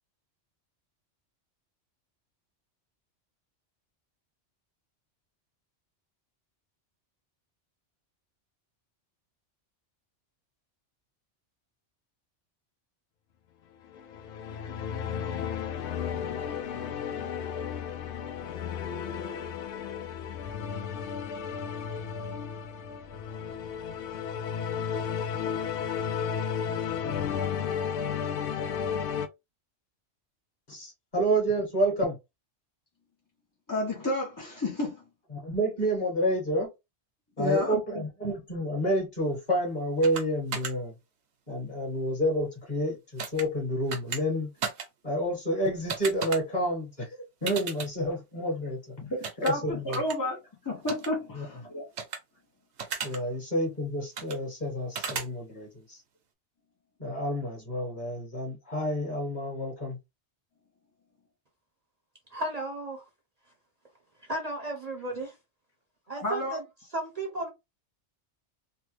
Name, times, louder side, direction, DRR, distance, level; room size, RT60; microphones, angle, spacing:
sound 1, 13.8-29.3, left 7 dB, 75° left, 0.8 m, -33 dB
voice 1, 30.7-32.2 35.3-36.7 37.4-41.0 41.5-44.5 45.0-49.0 49.4-50.1 51.3-51.6 53.0-56.0 57.0-60.0, equal, 40° left, 1.6 m, -29 dB
voice 2, 33.7-35.0 37.4-38.0 49.1-50.4 50.6-51.8 66.2-66.6, left 1 dB, 25° left, 0.6 m, -31 dB
sound 2, 40.0-40.2 40.5-40.7 43.2-43.4 43.9-44.2 44.6-44.9 45.9-46.4 47.5-47.9 49.2-49.5 49.9-50.1 50.9-51.1 52.0-52.2 52.8-53.2 54.2-54.4 54.9-55.3, right 6 dB, 70° right, 1.0 m, -34 dB
voice 3, 62.3-63.0 64.3-65.3 66.1-66.6 66.9-67.5, right 2 dB, 40° right, 0.7 m, -34 dB
3.3 x 2.1 x 3.1 m
omnidirectional pair, 1.2 m